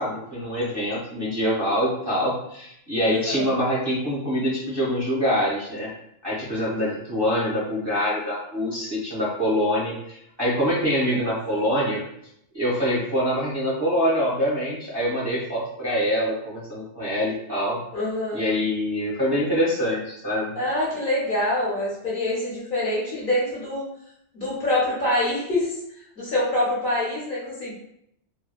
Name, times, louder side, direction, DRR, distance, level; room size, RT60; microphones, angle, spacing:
voice 1, 0.0-5.9 6.2-12.0 12.5-17.8 18.3-20.6, equal, 25° right, -7 dB, 0.6 m, -25 dB
voice 2, 3.0-3.5 11.2-11.3 17.9-18.4 20.6-23.9 24.3-27.7, left 1 dB, 55° left, -8 dB, 0.9 m, -25 dB
2.7 x 2.1 x 2.3 m, 0.75 s
omnidirectional pair, 1.2 m